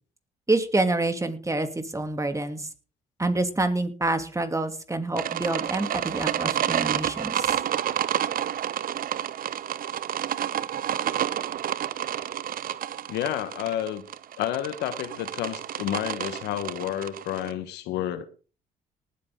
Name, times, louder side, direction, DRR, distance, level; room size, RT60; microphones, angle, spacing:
voice 1, 0.5-2.6 3.2-7.5, right 2 dB, 20° right, 2.8 m, -27 dB
sound 1, 5.2-17.5, right 10 dB, 60° right, 0.8 m, -30 dB
voice 2, 13.1-14.0 14.4-18.2, left 12 dB, 80° left, 1.3 m, -30 dB
19.0 x 8.5 x 3.8 m
supercardioid pair, 60°, 17 cm